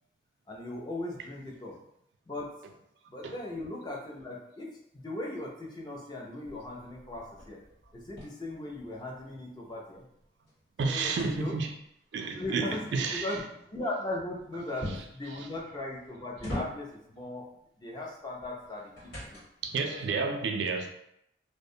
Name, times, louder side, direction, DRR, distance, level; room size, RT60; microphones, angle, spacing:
voice 1, 0.5-1.8 2.3-2.5 3.1-7.6 7.9-10.0 10.8-11.6 12.3-12.9 13.1-17.5 17.8-19.4 19.8-20.2, left 2 dB, 25° left, 0.4 m, -38 dB
sound 1, 6.4-9.3 9.7-12.0 14.8-15.3 15.9-17.1 18.4-19.7, left 1 dB, 80° left, 1.4 m, -42 dB
voice 2, 10.8-11.7 12.1-13.3 19.6-20.9, right 4 dB, 80° right, 0.3 m, -30 dB
2.5 x 2.2 x 2.6 m
head